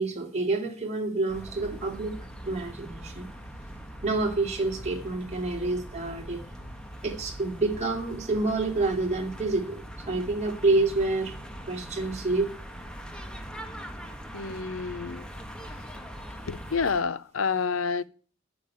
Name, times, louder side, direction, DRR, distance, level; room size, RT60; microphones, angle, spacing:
voice 1, 0.0-2.2 2.4-3.3 4.0-6.4 7.0-11.3 11.7-12.5, right 2 dB, 35° right, 2.7 m, -28 dB
sound 1, 1.3-17.0, equal, 5° left, 1.3 m, -42 dB
voice 2, 14.3-15.3 16.5-18.0, left 5 dB, 90° left, 0.7 m, -29 dB
9.9 x 7.2 x 9.0 m
head